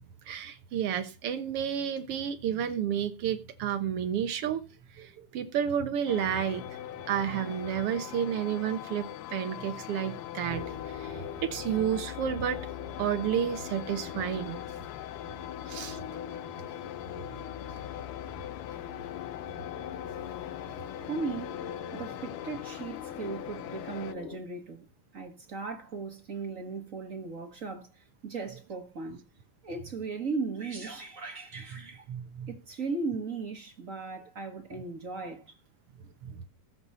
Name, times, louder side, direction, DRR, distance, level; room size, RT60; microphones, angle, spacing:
voice 1, 0.3-4.6 5.0-12.6 13.0-14.6 15.7-16.3 21.0-21.1 32.1-32.5 36.2-36.4, right 9 dB, 85° right, 1.2 m, -31 dB
sound 1, 6.1-24.1, left 13 dB, 90° left, 2.8 m, -42 dB
sound 2, 10.5-24.4, left 8 dB, 70° left, 2.4 m, -42 dB
voice 2, 21.1-21.6 21.9-24.9 25.1-29.2 29.6-32.1 32.5-35.5, right 4 dB, 45° right, 1.0 m, -37 dB
16.0 x 7.9 x 5.5 m
omnidirectional pair, 4.4 m